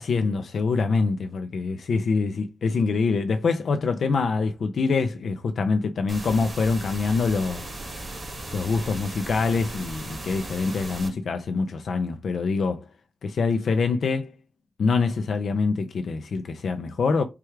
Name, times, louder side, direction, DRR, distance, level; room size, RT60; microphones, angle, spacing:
voice 1, 0.0-7.7 8.5-12.8 13.2-14.3 14.8-17.2, left 4 dB, 70° left, 0.4 m, -25 dB
sound 1, 6.1-11.1, right 1 dB, 35° right, 1.8 m, -37 dB
4.7 x 2.3 x 4.4 m
wide cardioid pair, 180°, 0 cm